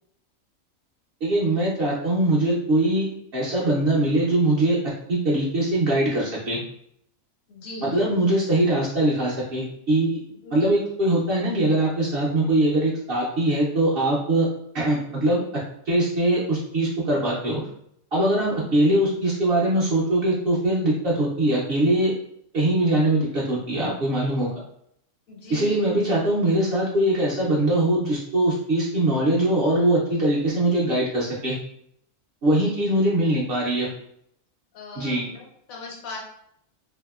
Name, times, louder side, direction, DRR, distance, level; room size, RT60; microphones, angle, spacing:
voice 1, 1.2-3.1 3.3-4.8 5.1-6.6 7.8-10.2 10.5-14.5 14.7-15.4 15.9-17.6 18.1-22.1 22.5-24.5 25.5-31.6 32.4-33.9 35.0-35.2, right 1 dB, 60° right, -5 dB, 0.6 m, -22 dB
voice 2, 7.5-8.1 10.4-10.7 25.3-25.8 32.6-32.9 34.7-36.2, left 3 dB, 80° left, -1 dB, 1.2 m, -39 dB
2.7 x 2.5 x 2.3 m, 0.73 s
omnidirectional pair, 1.4 m